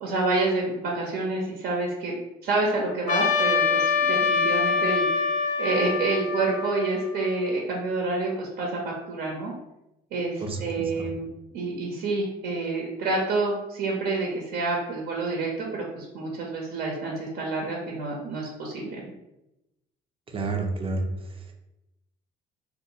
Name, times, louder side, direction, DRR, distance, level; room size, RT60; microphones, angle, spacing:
voice 1, 0.0-5.3 5.6-9.5 10.1-11.3 11.5-19.0, right 3 dB, 80° right, -1 dB, 0.6 m, -28 dB
Trumpet, 3.1-7.5, left 4 dB, 50° left, 0.4 m, -25 dB
voice 2, 10.4-11.1 20.3-21.5, right 3 dB, 35° right, 2 dB, 0.5 m, -31 dB
2.6 x 2.4 x 2.8 m, 0.92 s
cardioid pair, 110°, 17 cm